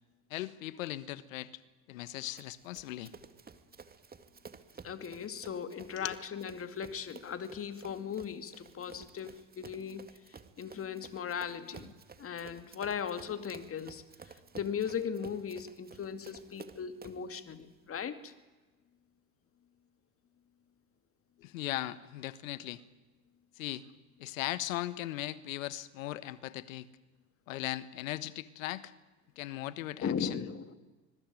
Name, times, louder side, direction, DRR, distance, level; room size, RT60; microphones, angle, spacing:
voice 1, 0.3-1.6 1.9-3.1 6.0-6.2 21.4-22.8 23.6-23.9 24.2-26.9 27.5-28.9 29.4-30.4, left 15 dB, 75° left, 16 dB, 1.5 m, -38 dB
Run, 2.4-17.3, right 5 dB, 20° right, 2.2 m, -53 dB
voice 2, 4.8-11.9 12.2-18.3 30.0-30.7, left 7 dB, 35° left, 10 dB, 2.5 m, -38 dB
25.5 x 21.5 x 9.2 m, 1.2 s
hypercardioid pair, 80°, 40 cm